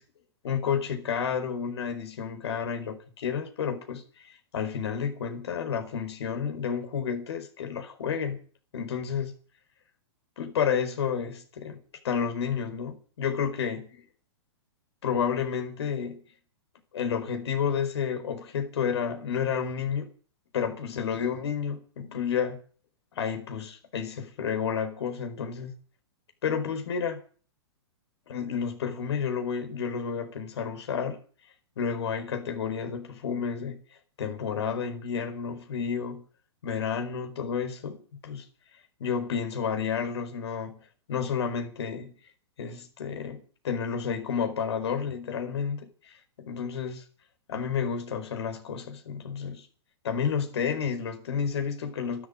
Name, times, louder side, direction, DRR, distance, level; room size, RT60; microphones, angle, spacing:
voice 1, 0.4-8.4 8.7-9.3 10.4-11.8 12.0-13.9 15.0-16.2 16.9-20.1 20.5-22.6 23.1-25.7 26.4-27.2 28.3-31.2 31.8-33.8 34.2-36.2 36.6-38.5 39.0-42.1 42.6-47.0 47.5-49.7 50.0-52.3, left 7 dB, 70° left, 4.8 m, -31 dB
12.5 x 11.5 x 9.5 m
hypercardioid pair, 120°, 14 cm